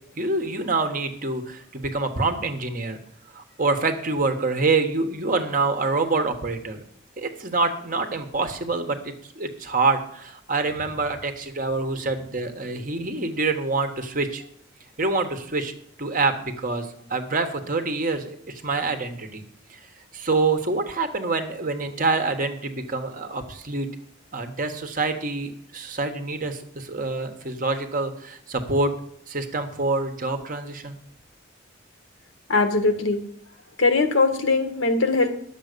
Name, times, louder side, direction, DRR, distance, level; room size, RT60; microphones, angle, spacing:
voice 1, 0.1-3.0 3.3-6.8 7.2-14.4 15.0-19.4 19.7-19.8 20.1-23.9 24.3-28.9 29.3-31.0, right 3 dB, 40° right, 6 dB, 1.3 m, -26 dB
voice 2, 32.5-33.2 33.8-35.3, left 3 dB, 80° left, 6 dB, 1.7 m, -20 dB
11.0 x 7.4 x 6.7 m, 0.67 s
head